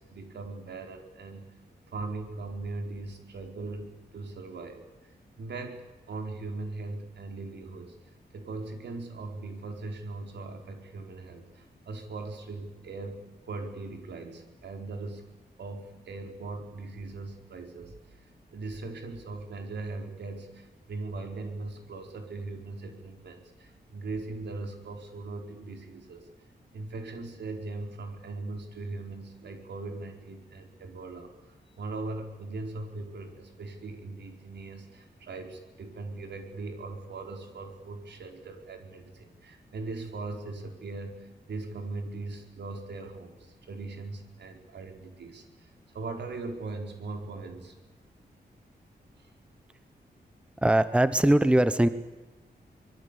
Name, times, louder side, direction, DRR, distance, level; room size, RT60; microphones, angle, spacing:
voice 1, 0.0-1.5 1.9-4.8 5.4-8.0 8.3-15.3 15.6-18.2 18.5-26.3 26.7-31.3 31.8-47.7 49.2-49.3, right 3 dB, 85° right, 4 dB, 4.8 m, -39 dB
voice 2, 50.6-51.9, right 1 dB, 5° right, 13 dB, 1.0 m, -21 dB
25.5 x 22.5 x 8.4 m, 1.2 s
wide cardioid pair, 155°, 17 cm